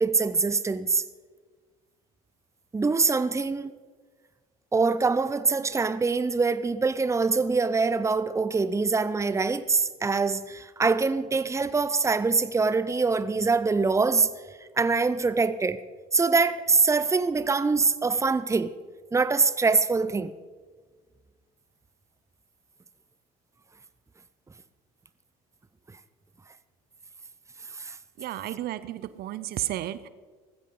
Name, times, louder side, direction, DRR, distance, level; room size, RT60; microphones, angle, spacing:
voice 1, 0.0-1.0 2.7-3.7 4.7-14.3 14.8-15.8 16.1-18.7 19.1-20.3 27.8-28.0, right 4 dB, 15° right, 0.8 m, -24 dB
voice 2, 28.2-30.1, right 13 dB, 60° right, 0.7 m, -33 dB
19.0 x 15.0 x 4.0 m
hypercardioid pair, 65°, 19 cm